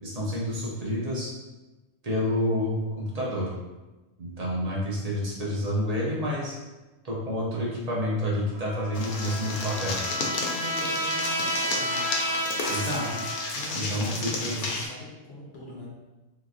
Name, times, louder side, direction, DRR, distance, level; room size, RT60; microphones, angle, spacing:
voice 1, 0.0-1.3 2.0-3.5 4.2-6.6 7.0-10.0 12.7-13.1 13.7-14.6, equal, 45° right, -5 dB, 0.5 m, -29 dB
Trumpet, 8.5-13.7, equal, 70° right, 1.1 m, -31 dB
sound 1, 8.9-14.9, left 3 dB, 85° left, 1.1 m, -32 dB
voice 2, 10.3-12.1 13.5-15.9, left 1 dB, 60° left, -4 dB, 0.7 m, -42 dB
3.2 x 2.8 x 2.5 m, 1.1 s
omnidirectional pair, 1.5 m